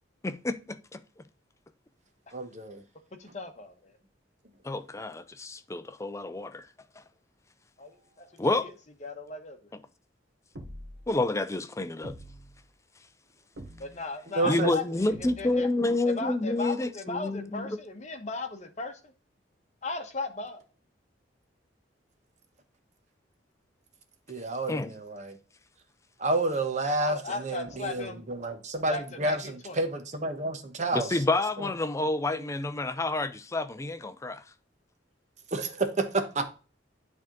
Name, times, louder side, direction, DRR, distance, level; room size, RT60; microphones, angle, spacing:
voice 1, 0.2-1.0 4.6-6.7 8.4-8.7 11.1-12.2 14.4-17.8 24.7-24.9 30.9-34.4, left 2 dB, 15° left, 0.4 m, -29 dB
voice 2, 2.3-2.8 14.4-14.7 24.3-25.4 26.2-31.1 31.6-31.7 35.5-36.4, right 2 dB, 40° right, 1.0 m, -30 dB
voice 3, 3.2-3.9 7.8-8.3 8.6-8.7 9.0-9.6 13.8-15.7 16.0-19.1 19.8-20.6 26.8-28.2 28.9-29.8, left 3 dB, 40° left, 1.0 m, -37 dB
sound 1, 10.5-11.2 12.0-12.6 13.6-14.2 15.1-15.7, equal, 75° right, 1.1 m, -45 dB
9.0 x 3.6 x 3.7 m
head